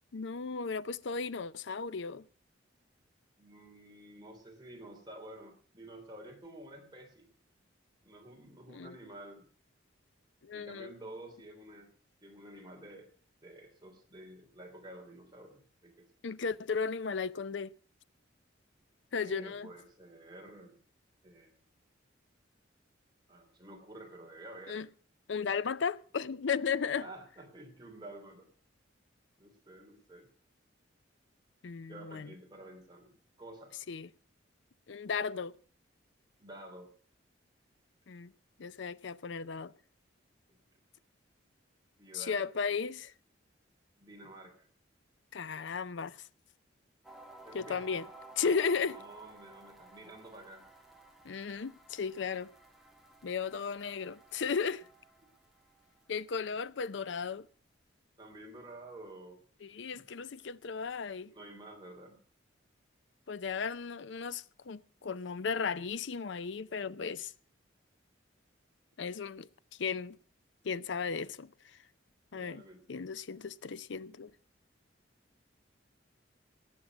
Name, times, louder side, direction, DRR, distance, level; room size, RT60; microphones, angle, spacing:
voice 1, 0.1-2.2 8.7-9.0 10.4-10.9 16.2-17.7 19.1-19.7 24.7-24.9 25.3-27.1 31.6-32.3 33.9-34.1 34.9-35.5 38.1-38.3 38.6-39.7 42.1-43.1 45.3-46.3 47.5-48.1 48.4-49.0 51.2-52.5 53.2-54.9 56.1-57.5 59.6-61.3 63.3-67.3 69.0-69.5 69.8-70.2 70.6-71.8 72.3-72.6 72.9-74.3, left 5 dB, 65° left, 0.5 m, -35 dB
voice 2, 3.4-7.3 8.0-9.4 10.5-11.9 12.2-13.1 13.4-16.1 19.1-20.8 21.2-21.5 23.3-24.8 27.0-28.5 29.4-30.3 31.9-33.1 33.4-33.7 36.4-36.9 40.5-40.6 42.0-42.4 44.0-44.7 47.4-48.0 48.8-50.6 58.2-59.4 59.9-60.0 61.3-62.2 72.3-73.0, right 1 dB, 20° right, 3.2 m, -50 dB
sound 1, 47.0-57.0, right 2 dB, ahead, 1.6 m, -55 dB
19.0 x 7.4 x 6.1 m
head